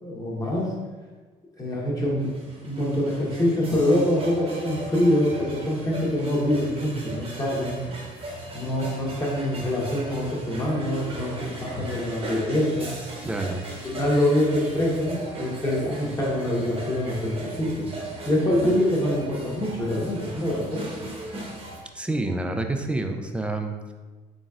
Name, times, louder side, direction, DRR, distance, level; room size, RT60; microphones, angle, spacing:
voice 1, 0.0-0.7 1.6-2.3 2.6-7.8 8.5-12.9 13.8-17.9 18.3-20.9, left 1 dB, 20° left, -4 dB, 1.1 m, -25 dB
sound 1, 2.0-21.8, right 2 dB, 35° right, 0.9 m, -38 dB
voice 2, 13.2-13.6 22.0-23.9, right 2 dB, 5° right, 5 dB, 0.3 m, -28 dB
4.0 x 3.8 x 2.4 m, 1.3 s
cardioid pair, 110°, 17 cm